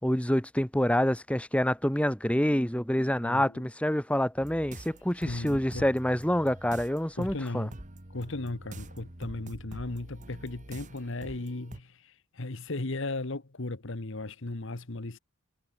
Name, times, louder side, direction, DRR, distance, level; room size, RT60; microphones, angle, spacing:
voice 1, 0.0-7.7, equal, 5° left, 1.3 m, -27 dB
voice 2, 3.2-3.7 5.2-5.9 7.2-7.7 8.1-15.2, left 2 dB, 60° left, 1.3 m, -36 dB
sound 1, 4.4-11.8, right 1 dB, 35° right, 2.2 m, -46 dB
head